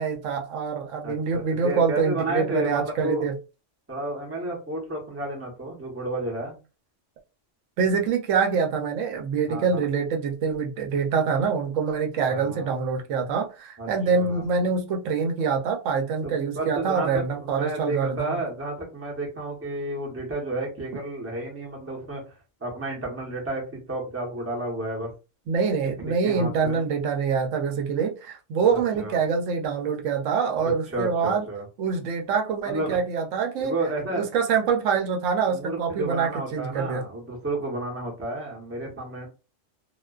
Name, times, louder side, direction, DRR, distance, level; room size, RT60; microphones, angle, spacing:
voice 1, 0.0-3.3 7.8-18.4 25.5-31.5 31.8-33.7 34.1-37.0, right 5 dB, 85° right, 0.9 m, -25 dB
voice 2, 1.0-3.3 3.9-6.6 9.5-9.9 12.3-12.7 13.8-14.4 16.2-22.3 22.6-25.1 26.0-26.8 28.7-29.2 30.6-31.6 32.6-33.0 33.6-34.3 35.5-39.3, right 2 dB, 15° right, 0.8 m, -32 dB
2.4 x 2.3 x 2.2 m
omnidirectional pair, 1.3 m